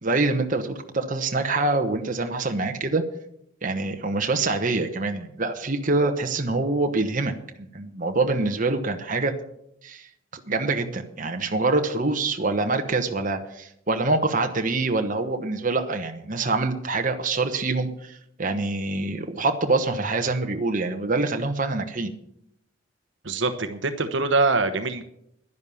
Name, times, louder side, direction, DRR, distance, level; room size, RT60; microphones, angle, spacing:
voice 1, 0.0-3.0 3.6-7.3 7.6-9.3 9.8-10.1 10.5-22.1, right 3 dB, 40° right, 5 dB, 1.1 m, -25 dB
voice 2, 23.2-25.0, right 3 dB, 65° right, 9 dB, 1.0 m, -24 dB
11.0 x 10.5 x 7.0 m, 0.75 s
head